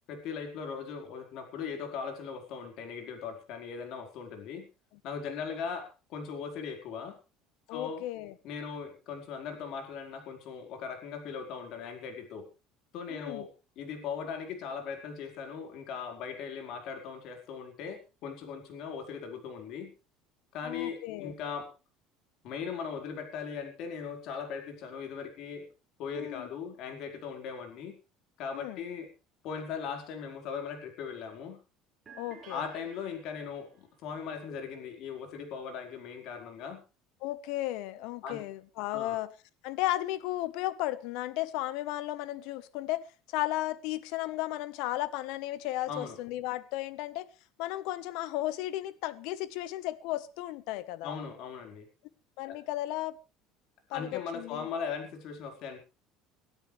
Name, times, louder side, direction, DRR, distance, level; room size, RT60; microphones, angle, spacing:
voice 1, 0.1-4.6 5.0-7.2 7.7-8.0 8.4-12.4 12.9-13.5 13.8-19.9 20.5-21.7 22.4-25.7 26.0-27.9 28.4-29.1 29.4-31.6 32.5-36.8 38.2-38.4 38.9-39.2 45.9-46.2 51.0-51.9 52.4-52.6 53.9-55.8, left 6 dB, 55° left, 4.8 m, -39 dB
voice 2, 7.7-8.3 13.1-13.5 20.6-21.3 26.1-26.5 28.5-28.8 32.2-32.6 37.2-39.3 39.6-47.3 47.6-51.2 52.4-53.2 53.9-54.7, left 15 dB, 70° left, 1.2 m, -34 dB
sound 1, 32.1-33.8, right 6 dB, 25° right, 5.1 m, -53 dB
22.5 x 13.0 x 3.4 m
cardioid pair, 145°, 0 cm